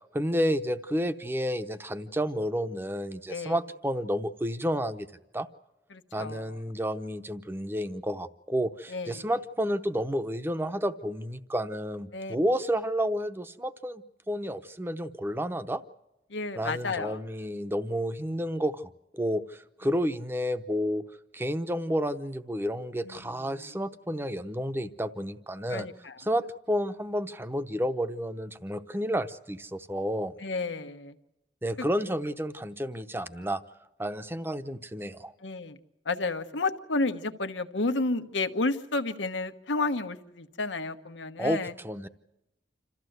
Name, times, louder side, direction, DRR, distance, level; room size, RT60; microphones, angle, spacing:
voice 1, 0.1-5.1 5.3-5.5 6.1-15.8 16.6-21.0 21.3-25.9 26.2-30.3 31.6-33.6 34.0-35.3 41.4-42.1, equal, 10° right, 10 dB, 0.8 m, -31 dB
voice 2, 5.9-6.6 8.9-9.2 12.1-12.4 16.3-17.2 23.0-23.7 25.7-26.2 30.4-31.1 31.8-31.9 35.4-35.8 36.0-41.7, left 3 dB, 90° left, 8 dB, 1.2 m, -31 dB
27.0 x 14.5 x 8.0 m, 0.92 s
head